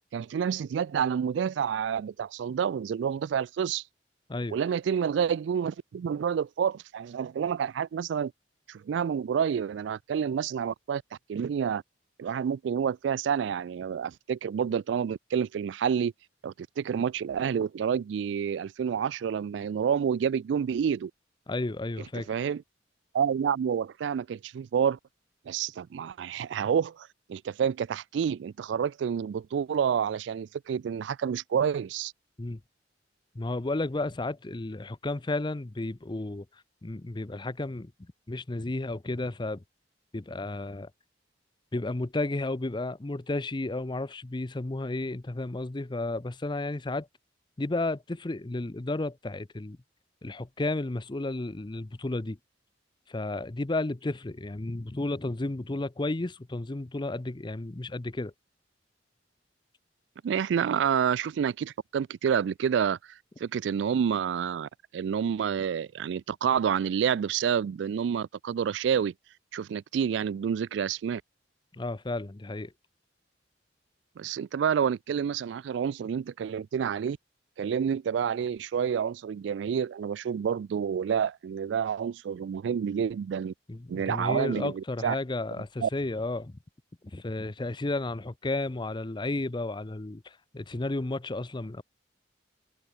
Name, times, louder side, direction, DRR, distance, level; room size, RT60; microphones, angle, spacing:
voice 1, 0.1-3.8 4.5-8.3 8.7-11.0 11.3-11.8 12.2-16.1 16.4-21.1 22.2-22.6 23.1-25.0 25.5-32.1 60.2-69.1 69.5-71.2 74.2-77.2 77.6-83.5 83.9-85.2 85.8-85.9, right 7 dB, 70° right, 0.3 m, -29 dB
voice 2, 21.5-22.3 32.4-32.6 33.3-36.5 36.8-37.9 38.3-39.6 40.1-40.9 41.7-47.1 47.6-49.8 50.2-52.4 53.1-58.3 71.7-72.7 83.7-86.6 87.0-91.8, left 2 dB, 25° left, 0.6 m, -32 dB
head